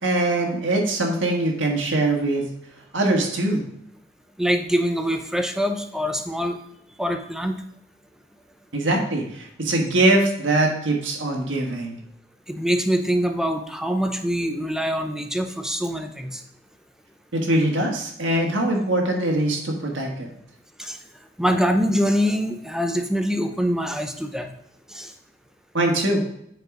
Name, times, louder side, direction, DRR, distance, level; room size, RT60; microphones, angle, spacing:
voice 1, 0.0-2.4 2.9-3.6 8.7-12.0 17.3-20.3 25.7-26.2, right 1 dB, 80° right, 1 dB, 1.6 m, -22 dB
voice 2, 4.4-6.6 7.0-7.6 12.5-16.4 20.8-21.0 21.4-24.5 24.9-25.1, equal, 5° right, 6 dB, 0.6 m, -24 dB
9.2 x 4.7 x 3.8 m, 0.73 s
head